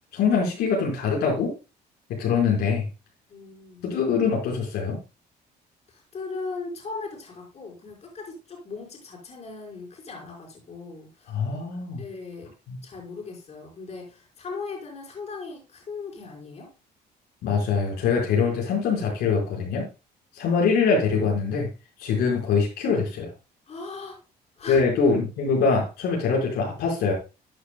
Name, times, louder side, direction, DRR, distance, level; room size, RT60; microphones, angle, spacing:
voice 1, 0.1-1.5 2.2-2.9 3.8-5.0 11.3-12.0 12.7-12.8 17.4-19.9 20.4-21.7 22.0-23.3 24.7-27.1, left 5 dB, 75° left, -2 dB, 5.1 m, -23 dB
voice 2, 3.3-3.8 5.9-11.4 12.0-12.5 12.8-16.7 23.7-24.2 24.6-24.8, left 4 dB, 40° left, -1 dB, 5.0 m, -38 dB
13.5 x 8.7 x 2.3 m, 0.29 s
cardioid pair, 110°, 17 cm